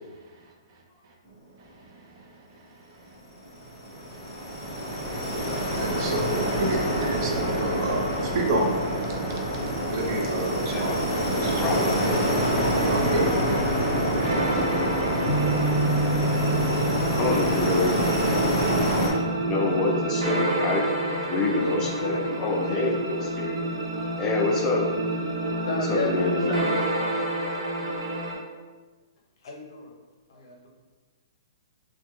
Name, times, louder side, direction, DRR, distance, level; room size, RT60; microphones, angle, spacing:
sound 1, 3.4-19.1, equal, ahead, 1.1 m, -26 dB
voice 1, 5.8-8.8 9.9-10.9 11.3-11.8 12.9-13.6, right 1 dB, 40° right, 0 dB, 0.5 m, -29 dB
voice 2, 10.7-11.0 11.4-11.9 17.1-18.0 19.4-23.6 24.2-24.9 25.7-26.6, left 3 dB, 15° left, -1 dB, 0.4 m, -27 dB
sound 2, 14.2-28.4, right 1 dB, 65° right, 0.9 m, -29 dB
sound 3, 15.3-21.7, right 2 dB, 40° left, 1.0 m, -31 dB
voice 3, 21.5-23.0 25.5-26.9 29.4-29.9 30.3-30.7, left 2 dB, 60° left, 1 dB, 0.6 m, -33 dB
3.1 x 2.1 x 3.0 m, 1.4 s
hypercardioid pair, 160°, 3 cm